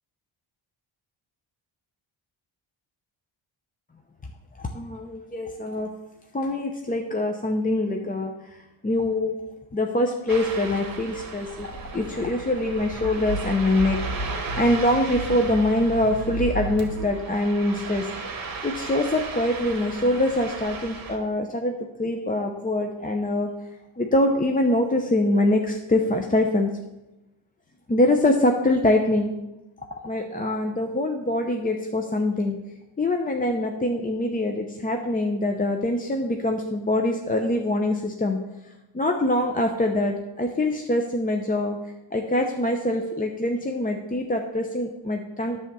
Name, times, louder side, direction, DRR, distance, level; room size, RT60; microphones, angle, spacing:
voice 1, 4.6-5.9 6.3-9.3 9.7-18.1 18.6-23.5 24.0-26.7 27.9-29.4 30.0-32.6 33.0-38.4 38.9-41.8 42.1-45.6, left 1 dB, 20° left, 3 dB, 0.6 m, -24 dB
Ocean, 10.3-21.2, right 4 dB, 45° right, 1.8 m, -36 dB
sound 1, 11.4-17.0, right 1 dB, 35° left, 2.4 m, -34 dB
10.0 x 3.5 x 6.8 m, 0.98 s
cardioid pair, 110°, 49 cm